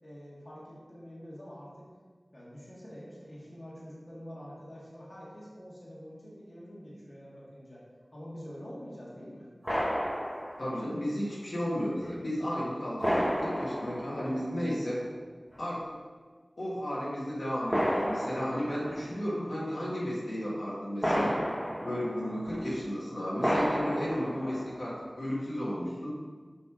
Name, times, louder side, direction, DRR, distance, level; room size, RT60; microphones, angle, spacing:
voice 1, 0.0-1.9 2.3-7.8 8.1-9.5, equal, 45° left, -7 dB, 1.6 m, -46 dB
sound 1, 9.6-10.8 12.0-12.1 13.0-14.7 15.5-15.6 17.7-19.2 21.0-22.7 23.4-24.9, equal, 15° left, 1.2 m, -32 dB
voice 2, 10.6-15.0 15.6-15.8 16.6-21.4 21.8-26.1, equal, 70° left, -7 dB, 1.7 m, -33 dB
6.2 x 3.3 x 4.8 m, 1.5 s
wide cardioid pair, 65°, 0 cm